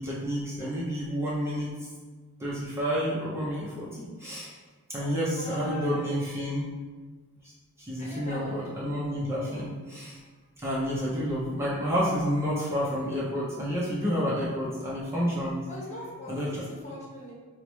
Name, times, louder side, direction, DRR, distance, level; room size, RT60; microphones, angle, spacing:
voice 1, 0.0-1.7 2.4-4.5 4.9-6.7 7.9-10.2 10.6-15.6 16.3-16.6, equal, 10° right, -7 dB, 0.5 m, -29 dB
voice 2, 5.0-6.2 8.0-8.9 15.7-17.3, left 1 dB, 35° left, -5 dB, 1.0 m, -41 dB
4.7 x 2.0 x 3.0 m, 1.4 s
head